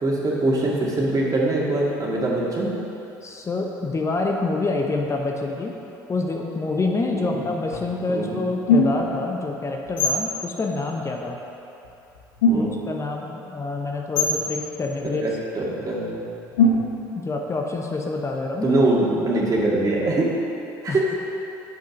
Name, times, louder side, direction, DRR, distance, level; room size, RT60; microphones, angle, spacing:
voice 1, 0.0-2.7 7.1-7.4 8.1-8.4 12.5-12.7 15.2-15.3 15.6-16.2 18.6-20.3 20.8-21.0, right 2 dB, 35° right, -4 dB, 1.9 m, -22 dB
voice 2, 3.2-5.8 6.1-11.4 12.5-15.4 17.1-18.7 20.9-21.1, left 3 dB, 30° left, 1 dB, 0.8 m, -27 dB
sound 1, 7.7-7.9 8.7-9.2 9.9-10.3 11.8-11.9 12.1-13.0 14.2-14.5 16.6-17.1, left 2 dB, 90° left, 0.7 m, -20 dB
7.7 x 5.3 x 5.2 m, 2.9 s
hypercardioid pair, 65°, 10 cm